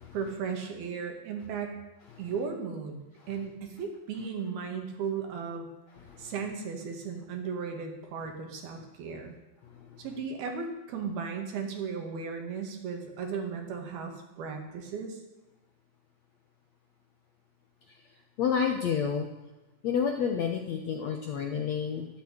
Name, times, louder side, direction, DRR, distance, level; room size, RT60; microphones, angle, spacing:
voice 1, 0.1-1.8 2.2-5.7 6.2-9.4 10.0-15.2, right 5 dB, 75° right, 3 dB, 4.0 m, -36 dB
voice 2, 18.4-19.3 19.8-22.1, left 7 dB, 70° left, 3 dB, 1.7 m, -29 dB
13.0 x 12.5 x 8.6 m, 1.0 s
omnidirectional pair, 4.5 m